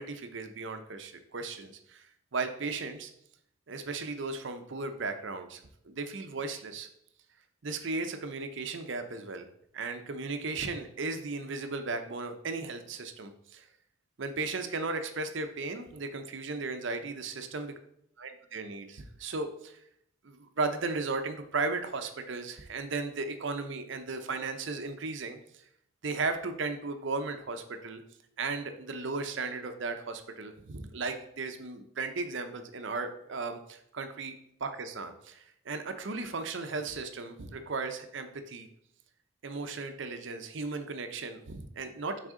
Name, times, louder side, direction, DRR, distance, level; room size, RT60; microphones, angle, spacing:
voice 1, 0.0-2.0 2.3-3.1 3.7-6.9 7.6-9.4 9.7-13.7 14.2-17.7 18.2-19.8 20.2-25.4 26.0-28.0 28.4-34.3 34.6-38.7 39.4-42.2, right 3 dB, 60° right, 8 dB, 0.6 m, -36 dB
6.3 x 4.1 x 3.7 m, 0.73 s
head